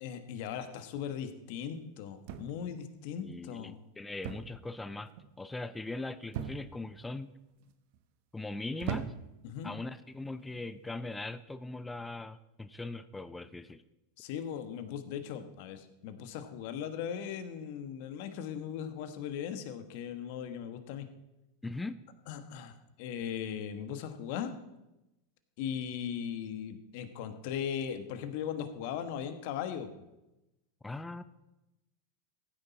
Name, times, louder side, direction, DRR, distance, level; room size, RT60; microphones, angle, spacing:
voice 1, 0.0-3.8 9.4-9.7 14.2-21.1 22.3-24.6 25.6-29.9, left 8 dB, 60° left, 9 dB, 1.5 m, -38 dB
sound 1, 2.3-2.8 4.2-4.6 4.9-5.3 6.3-6.9 7.6-8.0 8.8-9.5 10.4-10.7, right 8 dB, 60° right, 1.1 m, -39 dB
voice 2, 3.2-5.1 5.4-7.3 8.3-9.1 9.6-13.8 21.6-22.0 30.8-31.2, left 2 dB, 10° left, 13 dB, 0.7 m, -40 dB
15.5 x 9.5 x 4.2 m, 0.95 s
hypercardioid pair, 100°, 0 cm